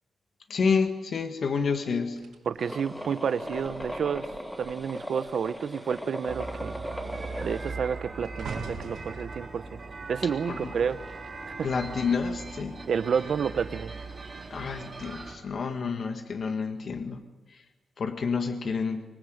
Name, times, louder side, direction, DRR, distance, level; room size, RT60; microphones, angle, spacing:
voice 1, 0.5-2.2 10.4-10.7 11.6-12.8 14.5-17.2 17.5-17.6 18.0-19.0, left 5 dB, 45° left, 6 dB, 1.7 m, -29 dB
sound 1, 2.2-4.9 5.2-5.6 5.9-11.2 11.9-12.2, right 5 dB, 85° right, 5.3 m, -44 dB
voice 2, 2.5-4.3 4.6-6.8 7.4-9.8 10.1-11.0 11.6-11.7 12.9-13.9, right 7 dB, 55° right, 13 dB, 1.0 m, -30 dB
sound 2, 2.6-7.7, equal, 5° left, 1.8 m, -38 dB
sound 3, 6.3-15.3, right 3 dB, 25° right, 4.6 m, -40 dB
25.5 x 21.0 x 8.1 m, 1.1 s
wide cardioid pair, 170°, 0 cm